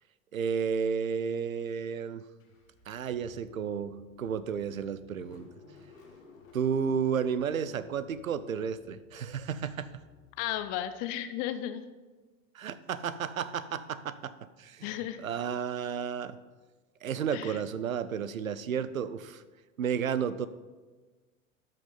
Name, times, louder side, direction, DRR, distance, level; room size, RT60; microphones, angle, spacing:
voice 1, 0.3-2.2 2.9-5.5 6.5-9.9 12.5-14.3 14.6-14.9 15.2-16.4 17.0-19.4 19.8-20.5, right 7 dB, 80° right, 15 dB, 0.6 m, -32 dB
Car / Engine starting, 2.4-11.2, left 4 dB, 75° left, 1.5 m, -56 dB
voice 2, 10.4-11.8 14.8-15.2 17.3-17.6, left 12 dB, 25° left, 11 dB, 0.3 m, -34 dB
13.0 x 5.3 x 3.8 m, 1.3 s
figure-of-eight pair, 85°, 40 cm